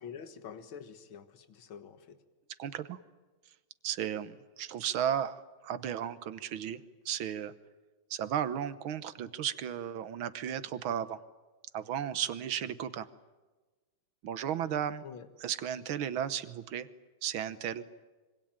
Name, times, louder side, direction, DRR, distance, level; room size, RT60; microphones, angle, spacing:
voice 1, 0.0-2.2 15.0-15.3, left 7 dB, 80° left, 10 dB, 2.3 m, -46 dB
voice 2, 2.6-3.0 3.8-7.5 8.1-11.2 11.7-13.1 14.2-15.1 15.4-16.9 17.2-17.8, right 9 dB, 80° right, 13 dB, 1.9 m, -34 dB
26.0 x 24.5 x 8.9 m, 1.2 s
omnidirectional pair, 2.2 m